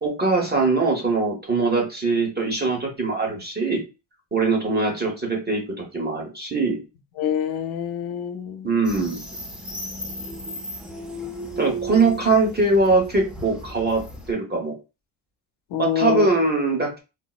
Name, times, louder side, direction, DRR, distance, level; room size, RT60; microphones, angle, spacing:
voice 1, 0.0-3.8 4.3-6.8 8.6-9.3 11.6-14.7 15.8-17.0, right 3 dB, 20° right, 0.9 m, -22 dB
voice 2, 7.2-8.8 15.7-16.3, left 10 dB, 85° left, 0.7 m, -26 dB
sound 1, 8.8-14.3, right 1 dB, ahead, 0.4 m, -35 dB
4.5 x 2.0 x 2.3 m
cardioid pair, 165°, 46 cm